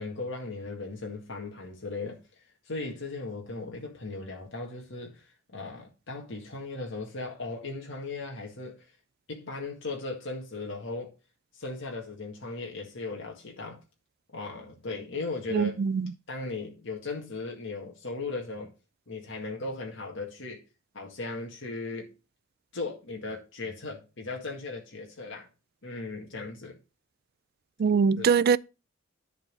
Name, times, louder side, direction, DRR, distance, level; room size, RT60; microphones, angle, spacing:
voice 1, 0.0-2.2 2.7-8.9 9.3-11.1 11.5-13.8 14.3-15.7 16.3-18.7 19.1-20.6 20.9-22.1 22.7-25.5 25.8-26.8 28.2-28.3, left 3 dB, 65° left, 1.9 m, -37 dB
voice 2, 15.5-16.1 27.8-28.6, right 6 dB, 50° right, 0.3 m, -23 dB
10.5 x 4.2 x 5.3 m
head